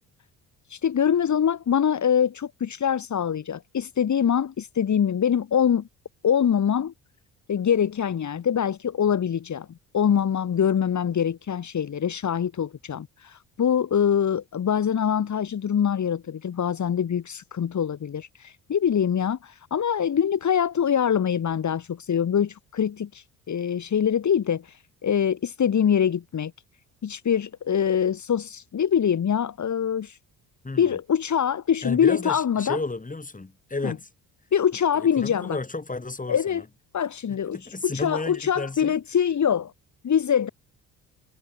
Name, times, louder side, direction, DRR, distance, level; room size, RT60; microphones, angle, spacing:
voice 1, 0.7-5.9 6.2-6.9 7.5-9.7 9.9-26.5 27.0-30.2 30.8-32.8 33.8-33.9 34.5-35.6 36.3-36.6 36.9-39.7 40.0-40.5, left 8 dB, 45° left, 2.8 m, -24 dB
voice 2, 30.6-31.0 31.8-34.1 35.0-36.6 37.3-38.9, left 3 dB, 20° left, 7.8 m, -33 dB
supercardioid pair, 70°, 38 cm